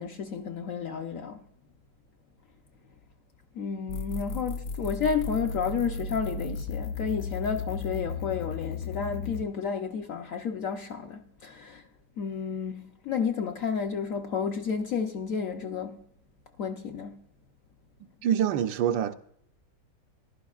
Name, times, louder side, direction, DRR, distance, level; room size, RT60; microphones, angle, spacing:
voice 1, 0.0-1.4 3.6-11.8 12.2-16.0 16.6-17.2, left 6 dB, 60° left, 0.9 m, -31 dB
sound 1, 3.9-9.5, left 4 dB, 75° left, 1.3 m, -35 dB
voice 2, 18.2-19.1, right 9 dB, 85° right, 1.4 m, -25 dB
14.5 x 11.5 x 2.3 m
omnidirectional pair, 1.9 m